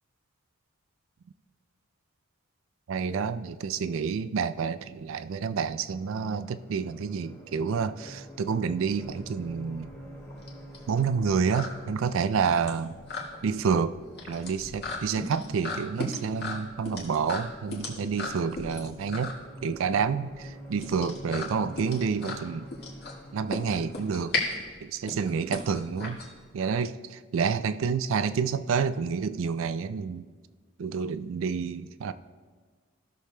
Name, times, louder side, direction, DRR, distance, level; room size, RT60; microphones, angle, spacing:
voice 1, 2.9-9.9 10.9-12.9 13.4-13.9 14.3-19.4 19.6-22.7 23.3-24.3 24.8-26.2 26.5-30.3 30.8-32.1, right 6 dB, 70° right, 0.4 m, -29 dB
sound 1, 4.9-24.3, equal, 15° left, 1.8 m, -48 dB
sound 2, 9.0-26.8, left 3 dB, 50° left, 1.8 m, -37 dB
16.0 x 6.5 x 2.2 m
head